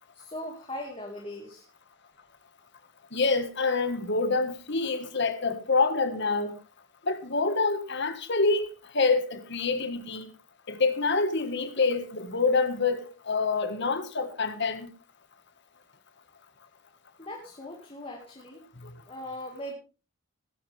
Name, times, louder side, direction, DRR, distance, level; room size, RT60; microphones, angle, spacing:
voice 1, 0.1-1.6 17.2-18.6 19.1-19.7, left 1 dB, 25° left, 2.2 m, -39 dB
voice 2, 3.1-6.6 7.0-10.2 10.7-14.9 18.8-18.9, left 3 dB, 55° left, 1.8 m, -26 dB
19.0 x 10.5 x 3.5 m
head